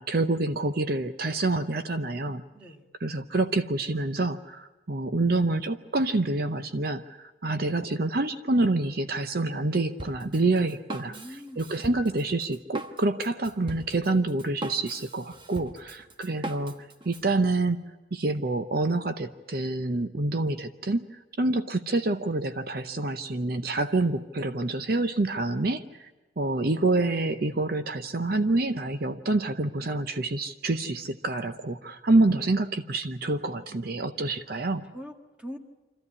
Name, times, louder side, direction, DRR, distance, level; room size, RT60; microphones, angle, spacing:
voice 1, 0.0-2.4 3.0-11.2 11.6-16.8 17.1-17.8 18.1-21.1 21.4-26.1 26.4-34.8, right 2 dB, 50° right, 9 dB, 0.7 m, -27 dB
voice 2, 2.5-2.9 10.9-11.8 33.2-34.1 34.9-35.6, equal, 5° right, 3 dB, 1.6 m, -44 dB
Drum kit, 10.0-17.3, right 1 dB, 25° right, 1.1 m, -41 dB
26.0 x 14.5 x 9.7 m, 1.2 s
head